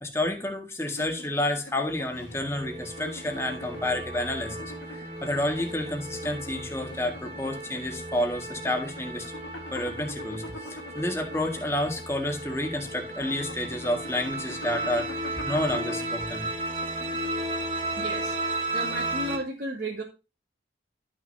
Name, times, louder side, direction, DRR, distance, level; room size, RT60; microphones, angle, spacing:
voice 1, 0.0-4.7 5.2-9.3 9.7-15.1 15.4-16.4, left 1 dB, 15° left, 3 dB, 1.8 m, -30 dB
sound 1, 0.8-17.7, left 1 dB, 75° left, 1.7 m, -45 dB
sound 2, 2.0-19.4, right 2 dB, 35° right, 3.1 m, -35 dB
voice 2, 18.0-18.3 18.7-20.0, right 1 dB, 50° right, -3 dB, 2.1 m, -33 dB
13.0 x 6.4 x 2.8 m, 0.28 s
head